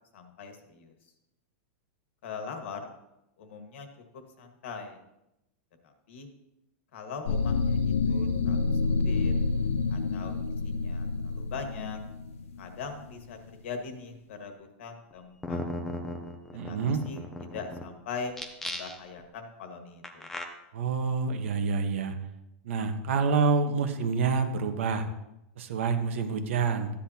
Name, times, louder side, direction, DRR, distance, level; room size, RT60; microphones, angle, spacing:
voice 1, 0.1-0.9 2.2-2.9 3.4-3.9 4.4-5.0 5.8-6.3 6.9-9.3 9.9-10.3 10.6-12.0 12.6-13.4 13.6-15.6 16.7-16.8 17.1-18.4 18.6-20.3, left 5 dB, 55° left, 5 dB, 1.7 m, -41 dB
sound 1, 7.3-13.3, left 4 dB, 70° left, 0.5 m, -28 dB
sound 2, 15.1-15.2 15.4-17.8 18.3-19.2 20.0-20.4, left 1 dB, 5° left, 0.6 m, -36 dB
voice 2, 16.5-17.0 20.7-22.2 22.6-25.1 25.6-26.9, right 5 dB, 60° right, 6 dB, 1.2 m, -27 dB
14.0 x 9.9 x 2.9 m, 0.89 s
supercardioid pair, 180°, 8 cm